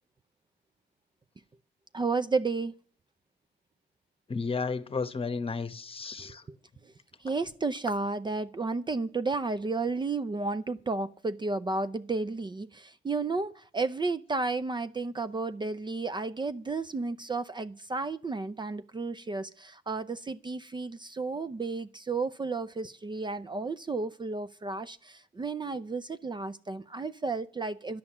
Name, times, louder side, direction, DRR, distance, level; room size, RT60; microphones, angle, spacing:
voice 1, 1.9-2.7 6.2-6.3 7.2-28.0, right 3 dB, 25° right, 0.6 m, -32 dB
voice 2, 4.3-6.4, left 4 dB, 30° left, 1.1 m, -33 dB
11.0 x 9.5 x 7.2 m
cardioid pair, 90°, 20 cm